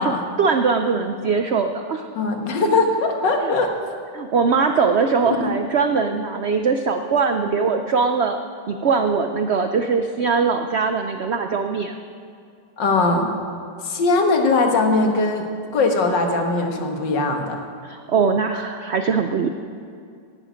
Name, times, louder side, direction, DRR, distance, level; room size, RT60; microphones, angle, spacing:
voice 1, 0.0-2.0 3.4-3.5 4.1-8.4 8.7-11.9 17.8-19.5, right 5 dB, 75° right, 7 dB, 0.6 m, -21 dB
voice 2, 2.1-3.7 5.3-5.6 12.8-13.3 13.8-15.5 15.7-17.7, left 3 dB, 90° left, 3 dB, 2.1 m, -20 dB
18.0 x 11.0 x 5.1 m, 2.3 s
omnidirectional pair, 1.9 m